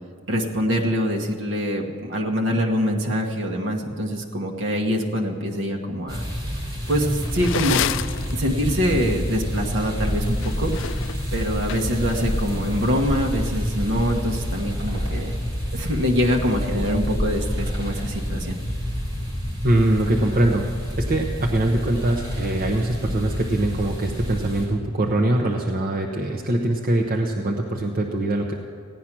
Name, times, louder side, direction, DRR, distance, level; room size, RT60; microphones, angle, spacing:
voice 1, 0.3-6.2 6.9-7.8 8.3-10.7 11.3-15.4 15.7-18.6, equal, 60° right, 1 dB, 1.2 m, -24 dB
sound 1, 6.1-24.7, equal, 20° right, 3.2 m, -28 dB
sound 2, 6.9-8.3 10.3-12.1, left 11 dB, 60° left, 0.3 m, -29 dB
voice 2, 19.6-28.5, right 1 dB, 45° right, 0 dB, 0.8 m, -23 dB
16.0 x 9.9 x 6.0 m, 2.2 s
head